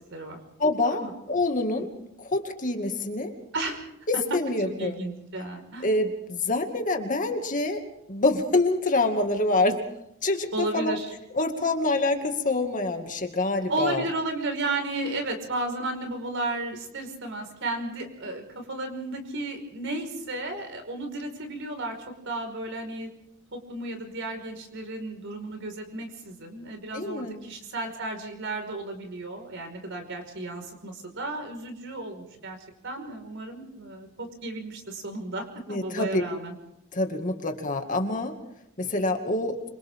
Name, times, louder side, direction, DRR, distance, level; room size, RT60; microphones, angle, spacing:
voice 1, 0.1-0.4 0.9-1.1 1.7-2.0 3.5-3.8 4.7-5.9 10.5-11.1 13.7-22.0 22.3-23.1 23.5-32.6 32.8-36.5, right 2 dB, 60° right, 5 dB, 5.3 m, -33 dB
voice 2, 0.6-1.0 1.3-1.9 2.2-3.3 4.3-5.0 5.8-7.8 8.1-9.8 10.2-11.0 11.3-14.1 26.9-27.4 35.7-36.2 36.9-38.4 38.8-39.6, left 2 dB, 40° left, 4 dB, 2.3 m, -26 dB
27.5 x 26.0 x 3.8 m, 0.78 s
head